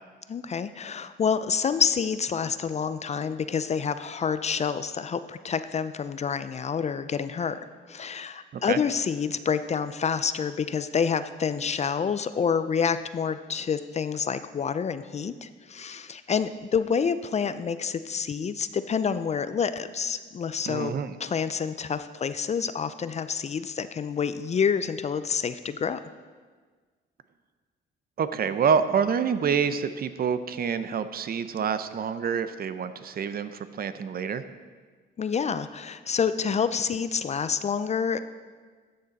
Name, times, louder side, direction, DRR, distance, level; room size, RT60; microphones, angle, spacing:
voice 1, 0.3-7.6 7.9-20.9 21.2-26.0 35.2-38.2, left 6 dB, 35° left, 12 dB, 0.4 m, -28 dB
voice 2, 20.7-21.1 28.2-34.4, right 7 dB, 50° right, 12 dB, 0.6 m, -27 dB
12.5 x 6.6 x 4.0 m, 1.5 s
cardioid pair, 90°, 20 cm